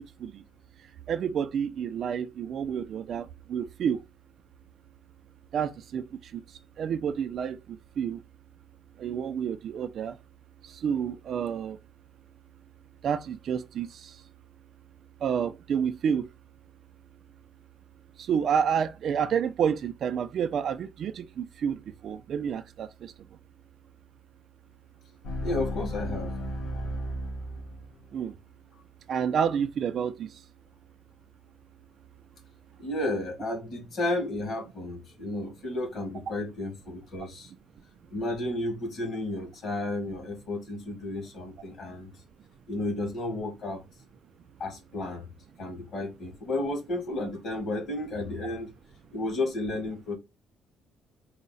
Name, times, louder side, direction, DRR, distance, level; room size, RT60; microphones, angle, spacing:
voice 1, 1.1-4.0 5.5-6.0 6.8-7.6 8.0-8.2 9.0-10.1 10.8-11.8 13.0-13.9 15.2-16.2 18.3-21.8 22.0-22.9 28.1-28.3 29.1-30.3, right 7 dB, 45° right, 0.4 m, -29 dB
sound 1, 25.2-28.0, equal, 70° left, 2.5 m, -34 dB
voice 2, 25.4-26.3 32.8-37.5 38.1-42.1 42.7-43.8 44.6-45.3 45.6-48.7 49.1-50.2, left 2 dB, 45° left, 2.1 m, -32 dB
4.6 x 2.1 x 4.0 m
cardioid pair, 150°, 0 cm